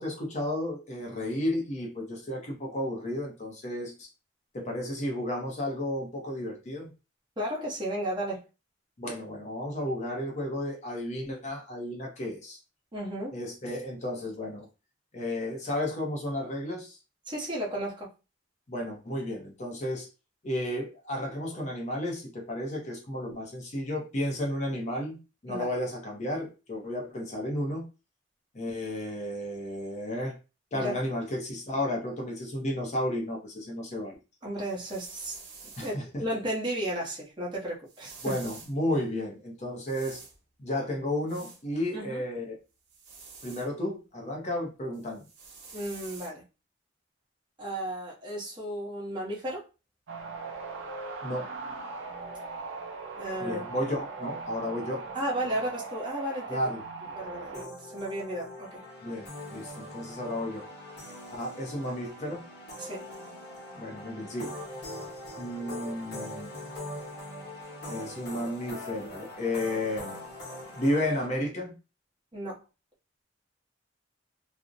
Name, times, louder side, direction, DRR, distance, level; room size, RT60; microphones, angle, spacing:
voice 1, 0.0-4.1 4.5-6.9 9.0-12.6 13.3-14.7 15.1-17.0 18.7-20.1 20.4-25.2 25.4-27.8 28.5-30.4 30.7-34.2 35.8-36.2 38.2-40.2 40.6-42.5 43.4-45.2 51.2-51.5 53.4-55.0 56.5-56.8 59.0-60.7 61.3-62.4 63.7-64.6 65.4-66.6 67.9-70.2 70.7-71.7, left 1 dB, 40° left, 0.6 m, -33 dB
voice 2, 7.4-8.4 12.9-13.4 17.3-18.1 25.5-25.7 30.7-30.9 34.4-35.4 35.8-38.2 41.9-42.2 45.7-46.4 47.6-49.6 53.2-53.7 55.1-56.7 57.1-58.8 62.8-63.0 72.3-72.6, right 1 dB, 25° right, 0.8 m, -34 dB
sound 1, 34.7-36.0 37.9-38.7 39.9-40.4 41.3-41.6 42.9-43.7 44.9-46.3, right 5 dB, 65° right, 0.8 m, -48 dB
sound 2, 50.1-57.6, right 3 dB, 85° right, 0.5 m, -39 dB
sound 3, 57.5-71.3, left 1 dB, 60° left, 1.0 m, -42 dB
2.5 x 2.0 x 2.5 m
head